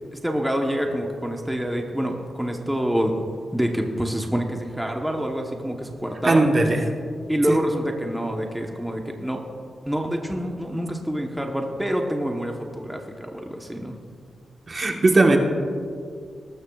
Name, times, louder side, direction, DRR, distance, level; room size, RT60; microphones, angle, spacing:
voice 1, 0.1-3.2 3.5-6.5 7.3-9.4 9.9-14.0, equal, 5° right, 2 dB, 1.0 m, -27 dB
voice 2, 6.2-6.8 7.5-7.6 14.7-15.4, right 2 dB, 35° right, 2 dB, 1.2 m, -18 dB
19.0 x 13.0 x 2.4 m, 2.2 s
wide cardioid pair, 110°, 0 cm